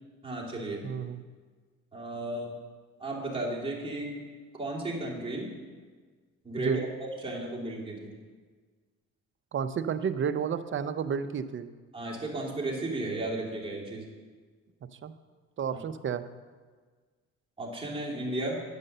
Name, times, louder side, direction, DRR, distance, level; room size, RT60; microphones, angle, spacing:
voice 1, 0.2-0.8 1.9-2.5 3.0-4.2 4.5-5.5 6.4-8.1 11.9-14.1 17.6-18.6, right 1 dB, 20° right, -4 dB, 2.7 m, -34 dB
voice 2, 0.8-1.2 6.6-6.8 9.5-11.7 15.0-15.1 15.6-16.2, right 7 dB, 40° right, 11 dB, 0.6 m, -31 dB
10.0 x 5.4 x 6.6 m, 1.5 s
cardioid pair, 90°, 30 cm